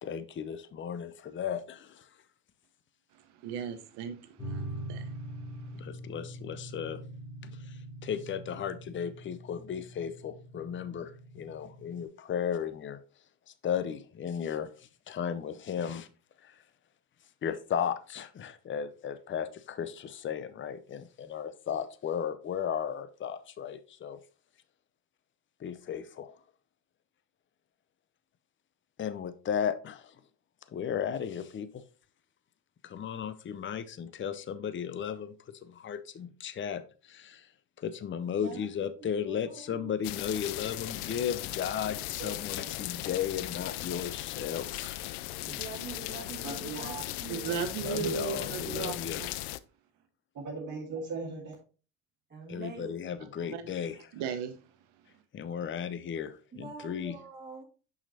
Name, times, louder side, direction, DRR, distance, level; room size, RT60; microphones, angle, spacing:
voice 1, 0.0-2.2 5.7-7.0 7.4-13.0 13.5-16.1 16.4-16.7 17.4-24.2 25.6-26.4 29.0-30.2 30.7-31.8 32.8-37.5 37.8-45.0 47.8-49.2 52.5-54.2 55.3-57.1, left 8 dB, 30° left, 0.6 m, -35 dB
voice 2, 3.1-5.9 47.3-49.3 53.5-53.6 54.1-54.7, right 7 dB, 70° right, 1.1 m, -37 dB
sound 1, 4.4-12.0, right 1 dB, 10° left, 3.1 m, -43 dB
voice 3, 38.4-40.0 45.5-47.6 52.3-53.5 53.8-53.9 56.5-57.6, right 4 dB, 25° right, 1.9 m, -45 dB
sound 2, 40.0-49.6, left 17 dB, 75° left, 0.5 m, -37 dB
voice 4, 46.4-47.0 48.0-48.2 48.8-49.0 50.3-51.5, right 4 dB, 45° right, 1.7 m, -39 dB
6.4 x 5.9 x 2.8 m
supercardioid pair, 80°, 42 cm